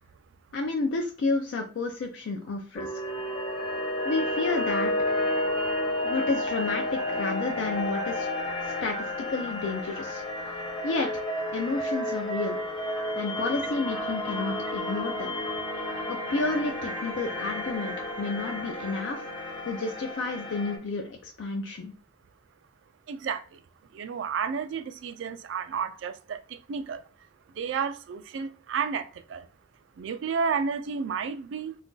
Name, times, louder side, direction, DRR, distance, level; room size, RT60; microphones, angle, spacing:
voice 1, 0.5-2.9 4.0-4.9 6.0-8.3 8.6-10.6 10.8-11.2 11.5-12.6 13.1-15.4 16.1-19.2 19.6-21.9, left 3 dB, 80° left, 0.4 m, -31 dB
sound 1, 2.7-20.8, left 1 dB, 25° left, 0.7 m, -31 dB
voice 2, 23.1-23.6 23.9-27.0 27.6-29.5 30.0-31.8, right 6 dB, 75° right, 0.3 m, -31 dB
2.4 x 2.2 x 3.8 m
head